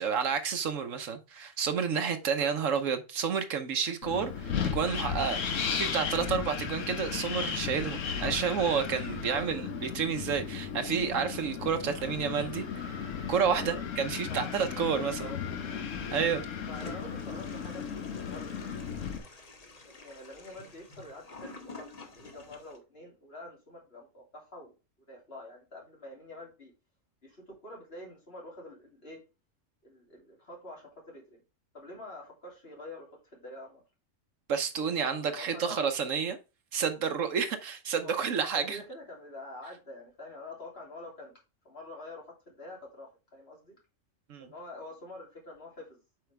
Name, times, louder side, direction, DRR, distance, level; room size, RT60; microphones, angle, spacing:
voice 1, 0.0-12.9 13.3-15.3 16.1-16.4 34.5-36.4 36.7-38.8 44.3-44.5, right 6 dB, 75° right, 1.2 m, -30 dB
Wind, 4.0-19.2, left 7 dB, 70° left, 1.3 m, -35 dB
voice 2, 9.1-9.8 13.6-13.9 14.3-15.7 16.7-19.0 19.8-24.7 25.1-26.7 27.2-29.2 29.8-31.4 31.7-33.8 35.2-35.8 38.0-38.2 38.5-41.4 41.6-43.8 44.4-46.0, left 1 dB, 50° left, 3.2 m, -47 dB
Toilet flush, 16.7-22.8, left 3 dB, 30° left, 1.1 m, -49 dB
7.8 x 5.0 x 3.4 m
omnidirectional pair, 1.4 m